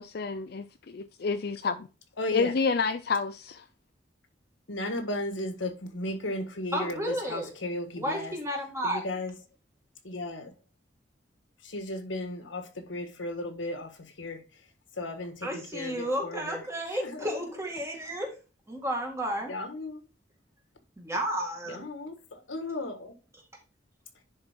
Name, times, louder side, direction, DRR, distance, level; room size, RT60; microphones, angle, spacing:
voice 1, 0.0-1.9 2.3-3.6, left 4 dB, 55° left, 0.4 m, -29 dB
voice 2, 2.2-2.5 4.7-8.3 8.8-9.3 10.0-10.5 11.6-14.4 15.0-16.6 17.0-17.4 19.5-20.0 21.7-23.1, left 2 dB, 85° left, 1.5 m, -35 dB
voice 3, 6.7-7.5 8.0-9.0 15.4-18.3 18.7-19.5 21.0-21.9, equal, 15° right, 1.9 m, -32 dB
10.5 x 4.5 x 3.6 m
head